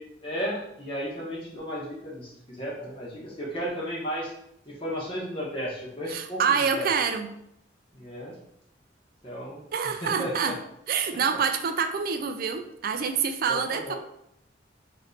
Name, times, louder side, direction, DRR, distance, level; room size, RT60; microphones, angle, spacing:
voice 1, 0.0-4.3 4.7-6.9 7.9-8.4 9.2-9.6 10.0-10.6 11.1-11.2 11.6-11.7 13.5-14.0, equal, 30° left, -5 dB, 0.9 m, -34 dB
voice 2, 6.1-7.3 9.7-10.5 10.9-13.9, right 6 dB, 50° right, 7 dB, 0.3 m, -26 dB
2.9 x 2.6 x 4.2 m, 0.77 s
head